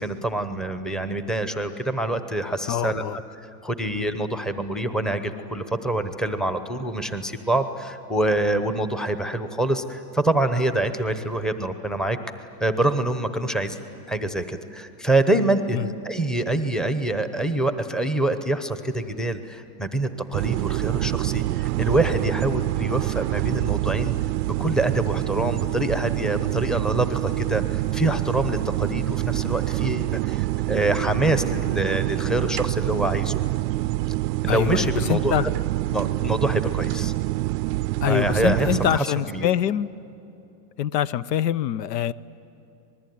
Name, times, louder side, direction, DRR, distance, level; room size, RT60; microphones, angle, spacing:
voice 1, 0.0-3.2 3.6-12.2 12.6-13.8 14.1-24.1 24.5-33.4 34.4-35.5 35.9-37.1 38.0-39.5, right 2 dB, ahead, 9 dB, 0.8 m, -25 dB
voice 2, 2.7-3.2 15.7-15.8 34.5-35.5 38.0-39.9 40.8-42.1, left 11 dB, 80° left, 19 dB, 0.8 m, -24 dB
sound 1, 20.3-39.0, right 18 dB, 80° right, 0.6 m, -26 dB
26.0 x 20.5 x 9.4 m, 2.8 s
supercardioid pair, 145°, 49 cm